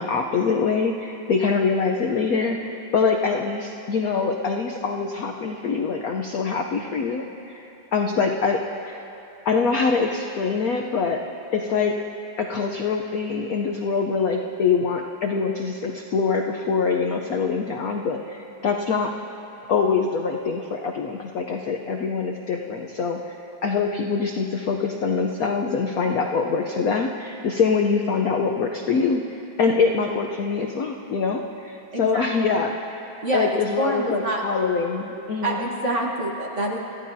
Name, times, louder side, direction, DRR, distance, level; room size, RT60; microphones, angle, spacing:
voice 1, 0.0-7.6 7.9-9.0 9.5-11.2 11.5-12.0 12.4-19.1 19.7-33.0 33.3-35.6, left 5 dB, 70° left, 2 dB, 0.8 m, -24 dB
voice 2, 31.9-32.3 33.2-34.4 35.4-36.8, right 1 dB, 40° right, -2 dB, 1.4 m, -26 dB
26.0 x 14.0 x 2.7 m, 2.9 s
omnidirectional pair, 2.3 m